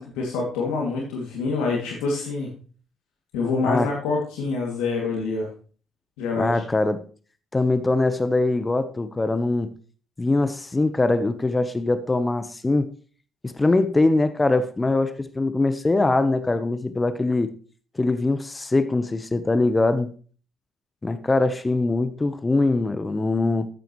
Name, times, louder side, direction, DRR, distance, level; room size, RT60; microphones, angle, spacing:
voice 1, 0.0-2.5 3.3-5.5 6.2-6.6, left 4 dB, 85° left, 2.5 m, -26 dB
voice 2, 6.4-7.0 7.5-9.7 10.2-12.9 13.4-17.5 17.9-20.1 21.0-23.7, left 2 dB, 25° left, 1.0 m, -22 dB
13.0 x 8.9 x 3.2 m
supercardioid pair, 60°, 0 cm